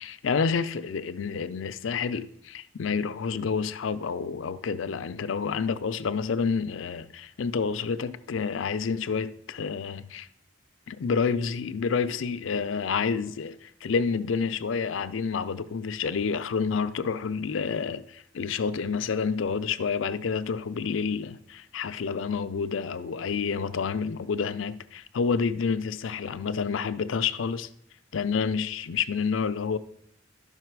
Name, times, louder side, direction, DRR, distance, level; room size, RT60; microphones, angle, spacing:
voice 1, 0.0-10.3 10.9-27.7 28.1-29.8, left 5 dB, 80° left, 0.5 m, -29 dB
12.0 x 5.7 x 4.6 m
head